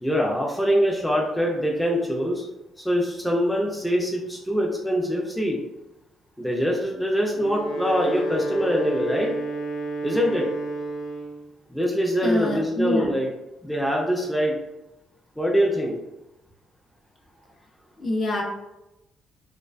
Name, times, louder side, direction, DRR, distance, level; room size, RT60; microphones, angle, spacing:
voice 1, 0.0-2.4 2.8-5.6 6.4-9.3 10.0-10.5 11.7-13.3 13.6-14.6 15.4-15.9, equal, 5° left, -2 dB, 0.4 m, -24 dB
Wind instrument woodwind instrument, 7.3-11.4, right 2 dB, 85° left, 0.5 m, -30 dB
voice 2, 12.2-13.1 18.0-18.4, left 1 dB, 45° left, -1 dB, 0.6 m, -25 dB
2.4 x 2.1 x 2.4 m, 0.93 s
cardioid pair, 90°, 0 cm